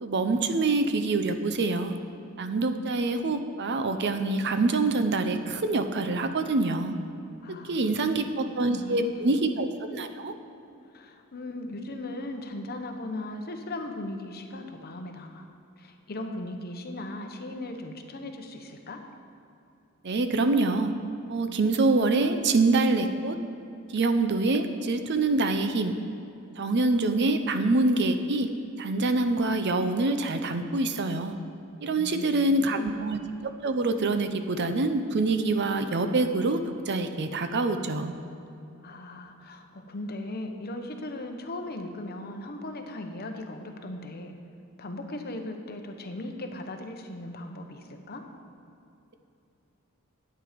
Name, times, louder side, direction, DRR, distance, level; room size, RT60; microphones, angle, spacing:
voice 1, 0.0-2.0 2.4-6.9 7.6-10.3 20.0-20.9 21.3-23.4 23.9-25.9 26.6-28.5 28.8-31.4 31.8-33.2 33.6-36.6 36.9-38.1, right 2 dB, 55° right, 8 dB, 0.6 m, -25 dB
voice 2, 7.4-9.4 10.9-15.5 15.8-19.0 32.0-33.0 38.8-44.3 44.8-48.2, left 1 dB, 45° left, 4 dB, 1.0 m, -38 dB
11.0 x 8.8 x 5.1 m, 2.7 s
head